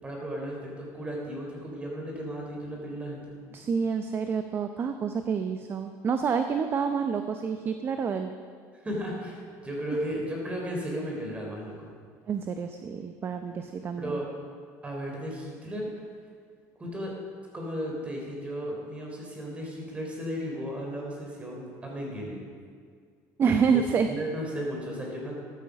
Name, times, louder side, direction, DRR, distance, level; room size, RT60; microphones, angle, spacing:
voice 1, 0.0-3.4 8.8-11.9 14.0-14.3 14.8-15.9 16.8-17.1 17.5-22.4 23.7-23.8 24.1-25.4, equal, 15° right, -1 dB, 4.0 m, -35 dB
voice 2, 3.5-8.3 12.3-14.2 23.4-24.1, right 6 dB, 30° right, 7 dB, 0.7 m, -28 dB
13.5 x 12.5 x 5.2 m, 2.1 s
cardioid pair, 130°, 7 cm